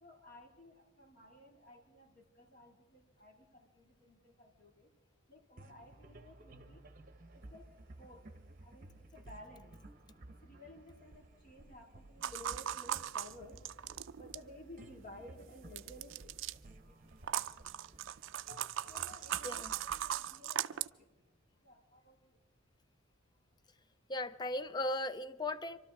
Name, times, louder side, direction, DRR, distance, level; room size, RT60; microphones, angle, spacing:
voice 1, 0.0-4.9 5.3-6.8 7.5-7.6 8.0-8.2 8.6-9.7 10.4-16.3 16.8-16.9 18.9-21.1 21.6-22.2, left 1 dB, 40° left, 2.1 m, -55 dB
sound 1, 5.6-21.2, right 1 dB, 40° right, 0.9 m, -56 dB
sound 2, 12.2-14.5 15.8-16.5 17.2-20.9, right 11 dB, 60° right, 0.4 m, -39 dB
voice 2, 24.1-25.8, left 1 dB, 20° left, 0.4 m, -37 dB
26.5 x 12.5 x 3.5 m
head